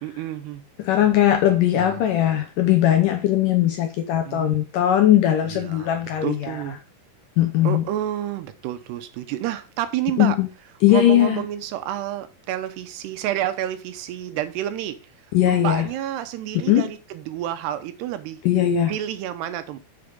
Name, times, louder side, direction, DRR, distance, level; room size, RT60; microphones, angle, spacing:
voice 1, 0.0-0.6 1.7-2.0 4.3-4.6 5.5-6.8 7.6-10.4 10.9-15.0 15.5-18.4 18.9-19.8, right 12 dB, 85° right, 3.0 m, -29 dB
voice 2, 0.8-6.6 7.4-7.8 10.2-10.5 10.8-11.4 15.3-15.9 16.7-16.9 18.4-18.9, left 12 dB, 80° left, 2.0 m, -19 dB
7.0 x 6.8 x 5.3 m
omnidirectional pair, 4.6 m